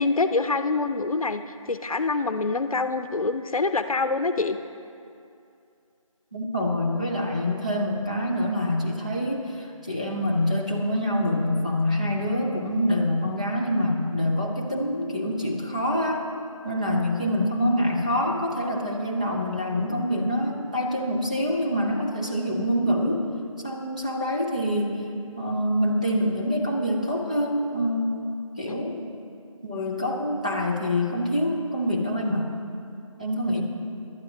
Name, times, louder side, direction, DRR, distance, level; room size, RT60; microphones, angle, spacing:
voice 1, 0.0-4.6, left 3 dB, 80° left, 10 dB, 0.6 m, -25 dB
voice 2, 6.3-16.3 16.6-23.3 23.6-25.1 25.4-28.2 28.6-29.0 29.6-32.6 33.2-33.6, left 1 dB, 15° right, -3 dB, 0.5 m, -26 dB
18.0 x 11.5 x 2.8 m, 2.5 s
figure-of-eight pair, 165°, 18 cm